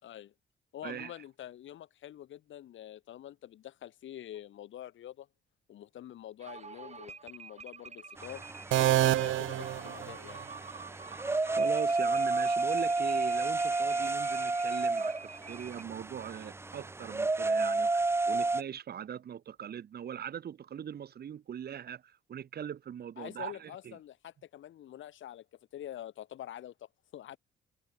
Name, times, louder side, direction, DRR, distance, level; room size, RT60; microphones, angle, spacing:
voice 1, 0.0-0.3 0.7-5.3 5.7-8.5 9.0-10.4 23.2-25.4 25.7-27.4, left 12 dB, 75° left, 5.1 m, -46 dB
sound 1, 6.4-15.8, right 5 dB, 35° right, 4.7 m, -48 dB
sound 2, 8.2-18.6, right 3 dB, 10° right, 0.5 m, -31 dB
sound 3, 8.7-10.6, right 13 dB, 80° right, 1.5 m, -28 dB
voice 2, 11.5-24.0, right 9 dB, 55° right, 1.5 m, -41 dB
cardioid pair, 90°, 20 cm